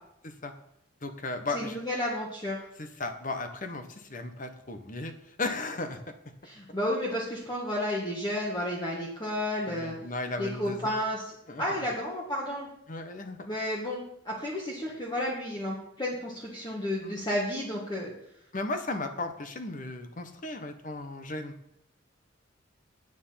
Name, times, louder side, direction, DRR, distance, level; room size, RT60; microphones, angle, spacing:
voice 1, 1.0-1.8 2.8-6.0 9.7-10.9 11.5-11.9 12.9-13.5 17.0-17.2 18.5-21.5, left 2 dB, 40° left, 8 dB, 1.1 m, -35 dB
voice 2, 1.5-2.6 6.4-9.9 10.4-11.2 11.6-12.7 13.5-18.1, left 1 dB, 20° left, -4 dB, 1.6 m, -32 dB
9.3 x 9.2 x 5.7 m, 0.76 s
head